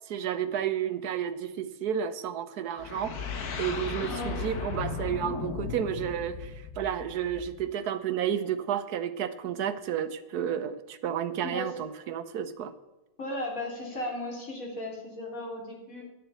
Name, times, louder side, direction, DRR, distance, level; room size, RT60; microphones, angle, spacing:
voice 1, 0.1-12.7, right 9 dB, 85° right, 11 dB, 1.4 m, -31 dB
sound 1, 2.8-7.6, left 5 dB, 75° left, 1.7 m, -36 dB
voice 2, 4.0-4.4 11.4-11.7 13.2-16.0, left 1 dB, 60° left, -2 dB, 3.6 m, -36 dB
10.0 x 7.0 x 9.1 m, 1.0 s
omnidirectional pair, 1.6 m